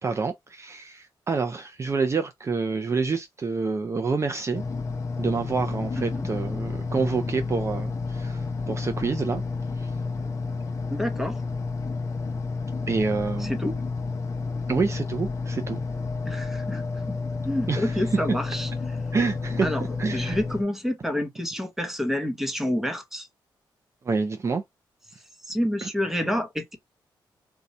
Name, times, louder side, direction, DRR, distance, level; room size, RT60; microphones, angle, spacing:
voice 1, 0.0-4.6 5.2-9.4 9.8-9.9 12.9-13.5 14.7-15.8 17.7-17.9 19.1-19.7 20.0-20.4 24.1-24.6 25.8-25.9, right 4 dB, 35° right, 0.5 m, -27 dB
sound 1, 4.5-20.6, left 4 dB, 40° left, 0.7 m, -30 dB
voice 2, 6.0-6.3 10.9-11.4 13.4-13.8 16.2-19.0 19.6-23.3 25.5-26.8, left 1 dB, 5° right, 0.8 m, -29 dB
2.7 x 2.3 x 4.1 m
cardioid pair, 95°, 8 cm